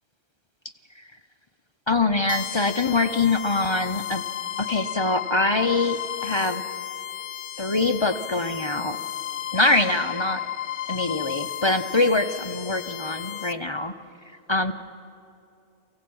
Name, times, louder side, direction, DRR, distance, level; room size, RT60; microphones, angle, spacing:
voice 1, 1.9-4.2 4.6-6.6 7.6-9.0 9.5-10.4 10.9-13.9 14.5-14.7, left 2 dB, 35° left, 8 dB, 0.5 m, -24 dB
sound 1, 2.3-13.5, left 11 dB, 85° left, 1.0 m, -33 dB
24.0 x 16.5 x 8.6 m, 2.6 s
omnidirectional pair, 1.2 m